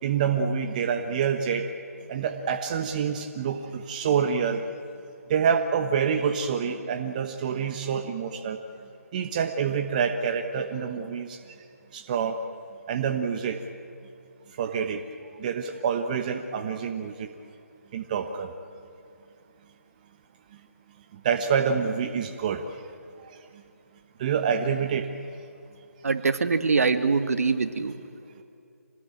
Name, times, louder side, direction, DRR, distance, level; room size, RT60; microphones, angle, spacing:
voice 1, 0.0-1.7 2.1-4.6 5.3-8.6 9.1-11.4 11.9-12.4 12.9-13.6 14.6-15.0 15.4-17.3 17.9-18.5 21.2-22.6 24.2-25.1, right 7 dB, 30° right, 6 dB, 1.2 m, -27 dB
voice 2, 26.0-27.9, right 4 dB, 65° right, 9 dB, 1.8 m, -23 dB
26.0 x 19.5 x 8.9 m, 2.5 s
figure-of-eight pair, 160°, 9 cm